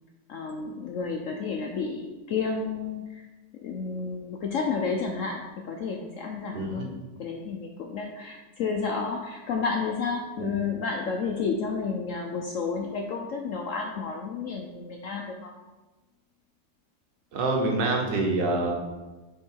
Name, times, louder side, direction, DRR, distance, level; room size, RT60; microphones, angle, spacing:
voice 1, 0.3-3.3 3.5-15.5, left 5 dB, 75° left, 2 dB, 0.7 m, -31 dB
voice 2, 6.5-6.9 10.4-10.6 17.3-18.7, right 2 dB, 90° right, 1 dB, 1.8 m, -26 dB
7.3 x 3.7 x 4.5 m, 1.2 s
omnidirectional pair, 1.9 m